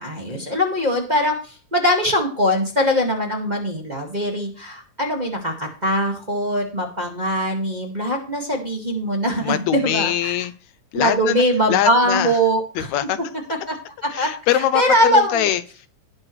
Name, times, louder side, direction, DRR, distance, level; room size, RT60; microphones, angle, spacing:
voice 1, 0.0-10.3 10.9-12.9 14.2-14.3 14.7-15.5, equal, 15° right, 1.7 m, -21 dB
voice 2, 9.4-11.4 11.7-12.4 12.8-13.2 14.1-15.9, left 12 dB, 80° left, 1.9 m, -23 dB
18.5 x 6.2 x 3.2 m
omnidirectional pair, 3.3 m